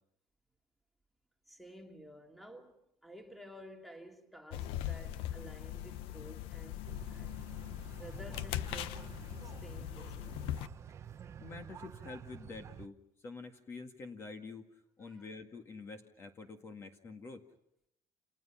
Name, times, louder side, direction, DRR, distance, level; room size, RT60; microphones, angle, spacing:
voice 1, 1.5-7.3 7.9-9.0 9.4-10.3 15.0-15.3, right 1 dB, ahead, 2.5 m, -53 dB
sound 1, 4.5-10.7, left 12 dB, 85° left, 1.0 m, -40 dB
sound 2, 6.8-12.9, right 8 dB, 30° right, 0.9 m, -50 dB
voice 2, 11.4-13.0 13.2-14.6 15.0-17.4, left 4 dB, 30° left, 2.0 m, -47 dB
29.5 x 29.0 x 5.9 m
cardioid pair, 165°, 9 cm